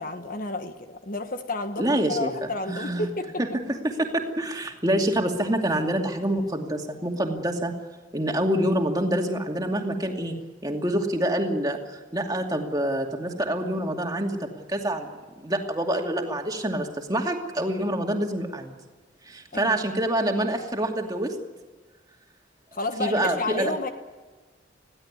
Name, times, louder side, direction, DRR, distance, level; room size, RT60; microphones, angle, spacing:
voice 1, 0.0-3.4 19.5-19.7 22.7-23.9, left 2 dB, 45° left, 7 dB, 1.4 m, -31 dB
voice 2, 1.8-3.1 3.4-7.7 8.1-10.3 10.6-15.1 15.4-18.7 19.2-21.3 23.0-23.7, right 1 dB, 20° right, 2 dB, 2.5 m, -26 dB
21.5 x 16.0 x 9.6 m, 1.3 s
head